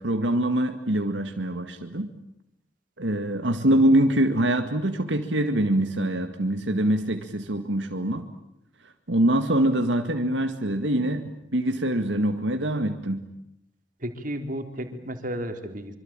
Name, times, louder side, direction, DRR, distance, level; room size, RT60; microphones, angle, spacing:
voice 1, 0.0-2.1 3.0-8.3 8.8-13.3, right 1 dB, 80° right, 6 dB, 2.0 m, -24 dB
voice 2, 14.0-16.0, right 1 dB, 50° right, 6 dB, 3.8 m, -33 dB
26.0 x 25.5 x 9.0 m, 0.83 s
head